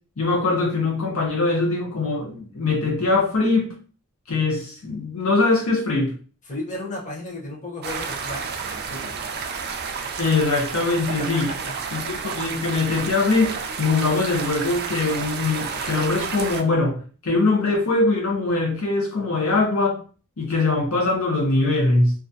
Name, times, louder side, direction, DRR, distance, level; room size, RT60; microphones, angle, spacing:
voice 1, 0.2-3.7 4.3-6.1 10.2-11.5 11.9-20.0 20.4-22.1, left 3 dB, 65° left, -1 dB, 0.6 m, -22 dB
voice 2, 6.5-9.2 11.2-11.7, left 1 dB, 35° left, -4 dB, 0.8 m, -34 dB
sound 1, 7.8-16.6, right 5 dB, 45° right, 0.3 m, -31 dB
2.3 x 2.1 x 2.6 m, 0.38 s
head